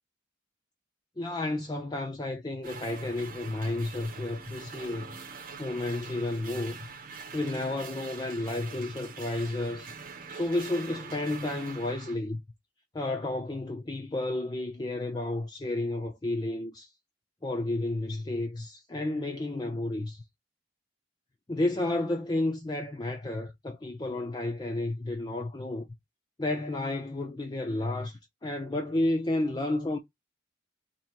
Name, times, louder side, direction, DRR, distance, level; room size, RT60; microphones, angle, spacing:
voice 1, 1.2-5.1 5.6-6.8 7.3-9.9 10.3-12.4 12.9-16.9 17.4-20.2 21.5-25.9 26.4-30.0, left 2 dB, 20° left, 0.5 m, -31 dB
sound 1, 2.6-12.2, right 5 dB, 45° right, 0.9 m, -44 dB
2.9 x 2.9 x 4.4 m
head